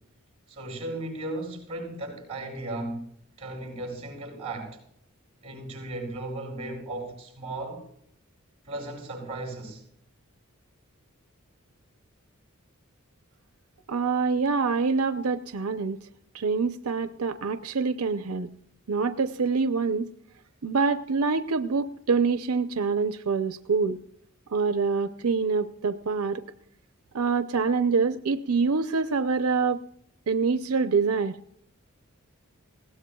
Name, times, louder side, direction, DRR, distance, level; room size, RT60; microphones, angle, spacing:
voice 1, 0.5-3.1 3.4-4.8 5.4-7.9 8.7-9.8, right 2 dB, 30° right, 7.7 m, -36 dB
voice 2, 13.9-16.0 16.3-18.5 18.9-20.1 20.6-24.0 24.5-26.4 27.1-29.8 30.3-31.4, right 4 dB, 85° right, 0.6 m, -25 dB
20.5 x 17.5 x 2.3 m
head